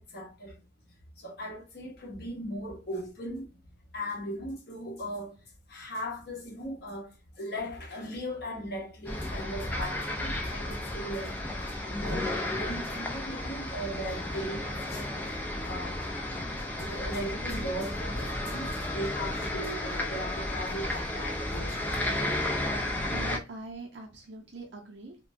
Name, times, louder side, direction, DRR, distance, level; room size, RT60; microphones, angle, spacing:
voice 1, 0.1-0.5 1.2-3.5 3.9-5.3 5.7-7.1 7.4-11.3 11.9-16.0 16.7-22.1, equal, 55° left, 0.9 m, -38 dB
sound 1, 9.0-23.4, left 1 dB, 10° left, 0.4 m, -33 dB
voice 2, 23.1-25.2, right 3 dB, 60° right, 0.6 m, -43 dB
2.9 x 2.2 x 2.5 m
head